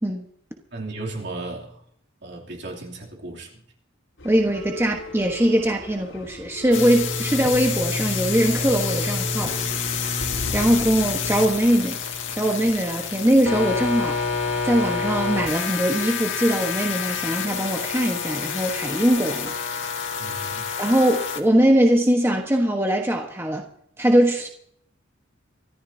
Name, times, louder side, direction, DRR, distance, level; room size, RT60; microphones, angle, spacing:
voice 1, 0.7-1.8 2.2-3.6 20.2-20.7, right 2 dB, 60° right, -1 dB, 3.0 m, -35 dB
sound 1, 4.2-13.6 14.5-15.6 15.9-16.1 17.0-17.1, left 1 dB, 85° left, 4.4 m, -38 dB
voice 2, 4.2-9.6 10.5-12.0 12.3-14.2 14.6-19.5 20.8-23.7 24.0-24.5, right 1 dB, 10° right, 1 dB, 1.3 m, -21 dB
sound 2, 6.7-21.4, left 5 dB, 65° left, 2.0 m, -28 dB
24.5 x 14.0 x 2.8 m, 0.69 s
head